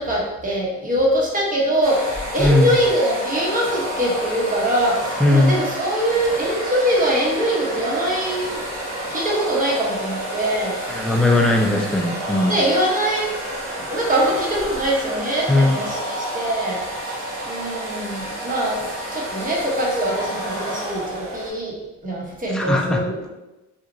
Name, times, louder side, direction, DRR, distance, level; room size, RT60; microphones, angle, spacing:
voice 1, 0.0-8.6 9.1-10.8 12.5-13.3 13.8-17.1 17.4-21.8 22.0-23.3, right 1 dB, 25° right, -4 dB, 1.0 m, -23 dB
sound 1, 1.8-21.5, right 1 dB, 75° right, 1.1 m, -30 dB
voice 2, 2.4-2.7 5.2-5.6 10.9-12.5 15.5-15.8 22.5-23.0, left 2 dB, ahead, 0 dB, 0.4 m, -18 dB
3.0 x 2.4 x 2.6 m, 1.0 s
cardioid pair, 90°, 30 cm